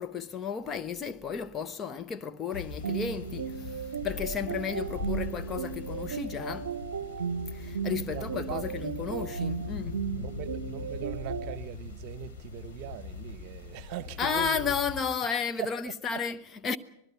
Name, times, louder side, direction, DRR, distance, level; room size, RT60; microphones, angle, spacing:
voice 1, 0.0-6.7 7.5-10.0 14.2-16.8, left 6 dB, 25° left, 0.8 m, -33 dB
sound 1, 2.5-15.0, left 4 dB, 50° left, 3.5 m, -40 dB
sound 2, 2.8-11.6, right 7 dB, 65° right, 0.7 m, -36 dB
voice 2, 8.0-8.8 10.1-14.7 15.6-15.9, right 12 dB, 45° right, 1.0 m, -40 dB
25.5 x 19.5 x 5.8 m
figure-of-eight pair, 90°, 0 cm